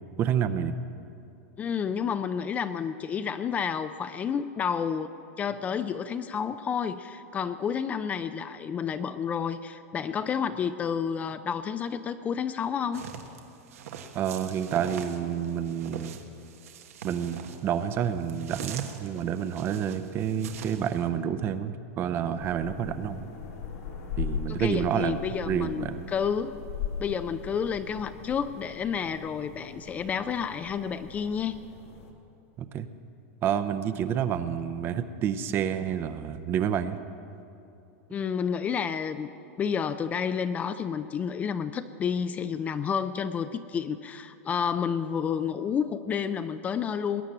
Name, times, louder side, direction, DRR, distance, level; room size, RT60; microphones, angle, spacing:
voice 1, 0.2-0.7 14.1-16.2 17.0-23.3 24.2-25.2 25.5-26.1 32.6-32.9 33.4-37.0, right 8 dB, 30° right, 12 dB, 0.6 m, -29 dB
voice 2, 1.6-5.1 5.4-13.0 24.5-26.6 27.0-31.6 38.1-47.2, left 7 dB, 20° left, 11 dB, 0.4 m, -30 dB
sound 1, 12.9-21.0, right 7 dB, 85° right, 1.4 m, -42 dB
sound 2, 22.4-32.1, left 7 dB, 85° left, 2.6 m, -39 dB
20.5 x 9.2 x 7.2 m, 2.7 s
supercardioid pair, 150°, 8 cm